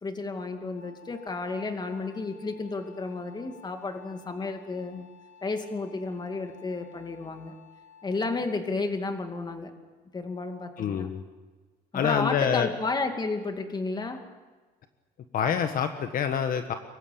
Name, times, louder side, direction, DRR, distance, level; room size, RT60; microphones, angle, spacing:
voice 1, 0.0-5.1 5.4-7.6 8.0-9.7 10.1-11.1 11.9-14.3, left 3 dB, 25° left, 6 dB, 2.4 m, -32 dB
Wind instrument woodwind instrument, 0.7-8.4, left 7 dB, 85° left, 4.5 m, -54 dB
voice 2, 10.8-11.2 11.9-12.7 15.3-16.7, left 8 dB, 55° left, 7 dB, 1.4 m, -26 dB
24.5 x 15.0 x 8.7 m, 1.3 s
cardioid pair, 110°, 17 cm